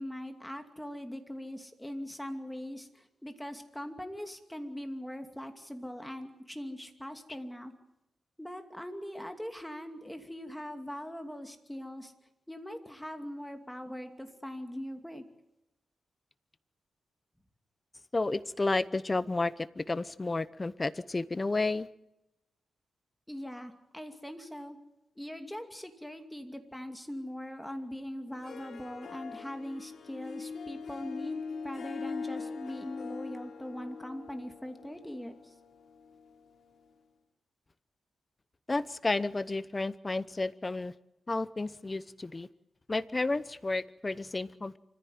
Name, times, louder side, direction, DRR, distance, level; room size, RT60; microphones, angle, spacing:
voice 1, 0.0-7.7 8.4-12.1 12.5-15.2 23.3-24.8 25.2-35.5, equal, 5° left, 6 dB, 2.5 m, -41 dB
voice 2, 18.1-21.9 38.7-40.9 41.3-42.5 42.9-44.8, left 2 dB, 25° left, 16 dB, 0.8 m, -31 dB
Harp, 28.3-36.9, left 5 dB, 75° left, 4.0 m, -42 dB
25.5 x 15.0 x 9.4 m, 0.90 s
wide cardioid pair, 100°, 0 cm